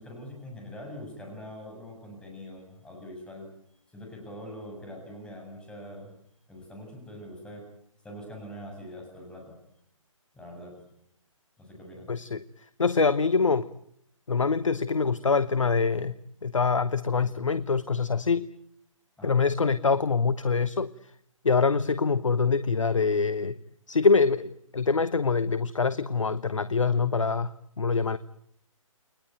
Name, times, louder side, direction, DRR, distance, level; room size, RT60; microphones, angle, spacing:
voice 1, 0.0-3.5 3.9-6.1 6.5-7.7 8.0-9.6 10.3-10.8 11.6-12.2 19.2-19.4, equal, 5° left, 2 dB, 7.5 m, -43 dB
voice 2, 12.1-12.4 12.8-13.7 14.3-18.5 19.2-20.9 21.4-23.6 23.9-28.2, left 4 dB, 65° left, 15 dB, 1.1 m, -25 dB
30.0 x 21.5 x 9.3 m, 0.72 s
figure-of-eight pair, 145°, 17 cm